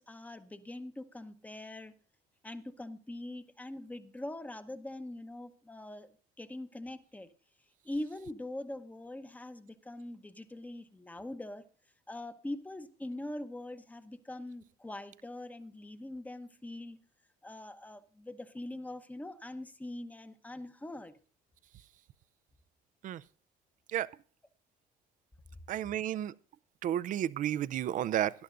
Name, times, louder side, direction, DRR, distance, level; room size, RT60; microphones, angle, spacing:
voice 1, 0.0-1.9 2.4-6.1 6.4-7.3 7.8-11.6 12.1-17.0 17.4-21.2, left 1 dB, 10° left, 0.9 m, -43 dB
voice 2, 25.7-26.3 26.8-28.3, right 11 dB, 50° right, 0.4 m, -32 dB
20.0 x 10.5 x 2.5 m
cardioid pair, 110°, 17 cm